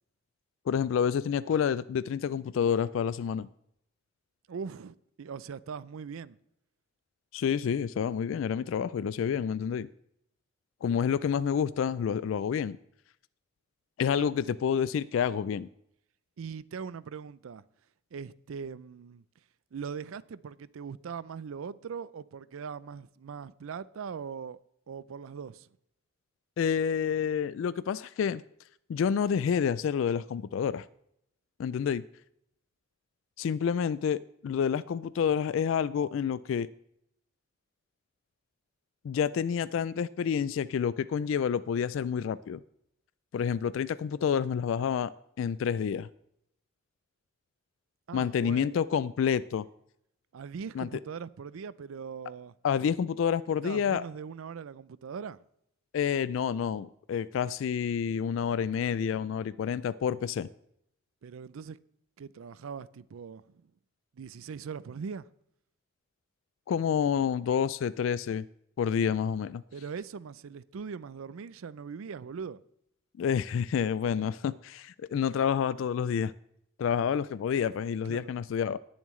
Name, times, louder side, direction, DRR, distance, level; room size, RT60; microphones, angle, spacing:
voice 1, 0.7-3.5 7.3-9.9 10.8-12.8 14.0-15.7 26.6-28.4 28.9-30.9 31.6-32.0 33.4-36.7 39.0-42.6 43.3-45.1 45.4-46.1 48.1-49.7 50.8-50.9 52.6-54.0 55.9-60.5 66.7-68.4 68.8-69.6 73.2-76.3 76.8-78.8, left 7 dB, 70° left, 0.3 m, -28 dB
voice 2, 4.5-6.4 14.2-14.6 16.4-17.6 18.1-19.2 19.7-24.6 24.9-25.7 48.1-48.8 50.3-52.5 53.6-55.4 61.2-61.8 62.2-63.7 64.1-65.3 69.7-72.6 78.0-78.3, right 6 dB, 90° right, 0.4 m, -41 dB
18.5 x 7.2 x 3.1 m
head